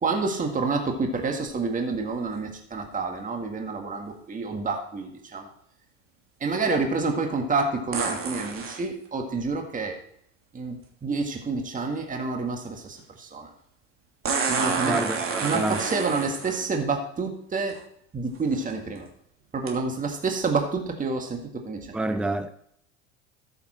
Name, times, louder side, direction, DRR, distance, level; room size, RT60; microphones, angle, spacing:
voice 1, 0.0-5.5 6.4-10.0 10.5-13.5 14.5-15.0 15.4-17.8 18.1-19.1 19.5-22.0, right 4 dB, 20° right, 1.9 m, -28 dB
sound 1, 7.9-8.8 10.8-10.9 14.2-16.7 17.7-17.8 18.4-18.7 19.7-19.8, right 5 dB, 35° right, 3.0 m, -29 dB
voice 2, 14.8-15.9 21.9-22.6, right 2 dB, 5° right, 0.7 m, -28 dB
13.5 x 7.1 x 4.4 m
hypercardioid pair, 80°, 36 cm